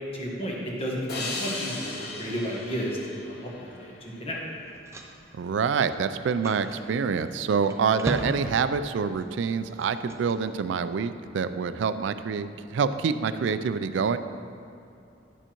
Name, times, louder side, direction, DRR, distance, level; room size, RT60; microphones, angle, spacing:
voice 1, 0.1-1.9 2.2-3.9 4.2-4.4, equal, 30° left, -3 dB, 1.3 m, -32 dB
sound 1, 1.1-4.4, left 2 dB, 55° left, 0.9 m, -37 dB
sound 2, 4.4-10.3, right 1 dB, 15° right, 0.5 m, -39 dB
voice 2, 5.4-14.2, right 6 dB, 75° right, 12 dB, 0.3 m, -26 dB
9.8 x 6.8 x 3.0 m, 2.6 s
head